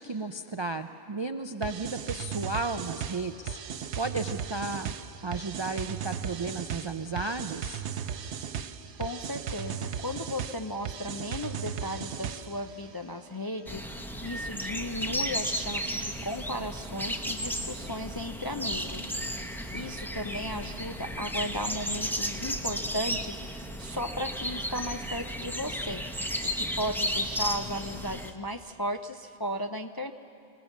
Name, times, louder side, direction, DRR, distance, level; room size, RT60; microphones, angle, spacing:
voice 1, 0.0-3.6 3.9-4.9 5.2-7.8, right 3 dB, 45° right, 8 dB, 0.3 m, -34 dB
sound 1, 1.6-12.7, right 8 dB, 75° right, 1.0 m, -36 dB
sound 2, 7.2-23.2, equal, 85° left, 7.3 m, -54 dB
voice 2, 9.0-19.1 19.4-26.0 26.4-30.1, equal, 30° left, 6 dB, 0.4 m, -36 dB
sound 3, 13.7-28.3, equal, ahead, 0.8 m, -34 dB
26.0 x 18.0 x 7.2 m, 2.6 s
omnidirectional pair, 1.2 m